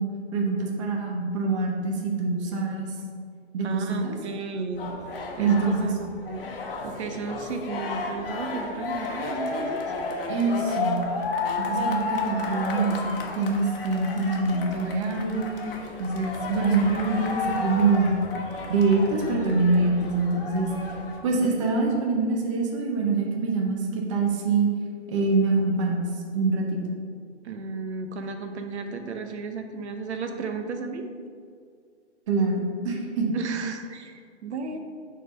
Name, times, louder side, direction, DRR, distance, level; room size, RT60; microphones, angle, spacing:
voice 1, 0.0-3.0 3.5-4.2 5.4-5.9 10.3-11.1 11.7-15.6 16.0-18.2 18.7-20.7 21.2-24.7 25.1-26.1 26.3-26.8 32.3-33.3, right 3 dB, 25° right, -1 dB, 0.7 m, -25 dB
voice 2, 3.6-4.9 5.4-6.5 6.8-9.8 27.4-31.0 33.3-34.8, right 4 dB, 65° right, 5 dB, 0.8 m, -34 dB
sound 1, 4.7-21.2, left 3 dB, 50° left, 1.0 m, -32 dB
6.6 x 3.8 x 5.3 m, 2.1 s
hypercardioid pair, 165°, 36 cm